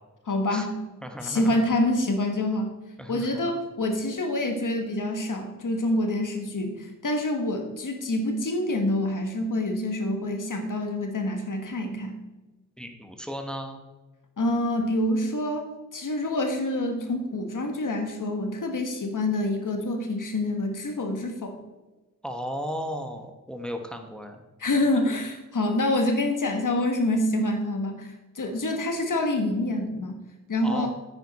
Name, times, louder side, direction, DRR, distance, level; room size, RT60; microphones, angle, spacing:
voice 1, 0.3-0.7 1.2-2.7 3.1-12.1 14.4-15.7 15.9-21.6 24.6-30.2 30.5-30.9, left 1 dB, 75° left, 4 dB, 1.4 m, -26 dB
voice 2, 1.0-1.6 3.0-3.5 12.8-13.8 22.2-24.4 30.6-30.9, equal, 5° left, 5 dB, 1.1 m, -35 dB
9.3 x 9.2 x 4.1 m, 1.1 s
wide cardioid pair, 75°, 32 cm